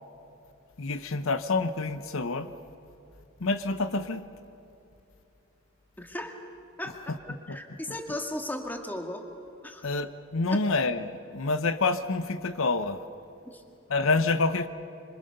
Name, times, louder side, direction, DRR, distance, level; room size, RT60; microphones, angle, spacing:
voice 1, 0.8-2.5 3.4-4.3 7.1-7.6 9.8-13.1 13.9-14.7, left 3 dB, 65° left, 11 dB, 0.8 m, -28 dB
voice 2, 6.0-6.4 6.8-6.9 7.5-9.2 9.6-9.9 10.5-10.6 13.4-13.6, left 1 dB, 10° left, 4 dB, 1.9 m, -36 dB
26.5 x 26.0 x 6.8 m, 2.8 s
head